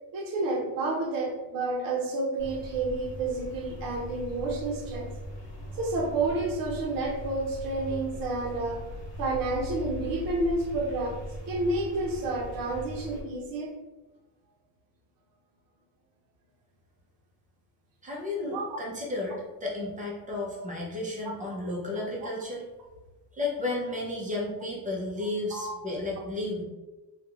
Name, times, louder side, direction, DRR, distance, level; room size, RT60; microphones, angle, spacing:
voice 1, 0.1-5.1 5.8-8.8 9.2-13.7 18.4-18.8 21.2-21.3 25.5-25.8, right 2 dB, 55° right, 0 dB, 0.8 m, -30 dB
sound 1, 2.4-13.2, left 1 dB, 45° left, 1.3 m, -40 dB
voice 2, 18.0-22.6 23.3-26.6, left 2 dB, 20° right, -3 dB, 0.7 m, -33 dB
3.4 x 2.4 x 2.9 m, 1.1 s
cardioid pair, 150°, 42 cm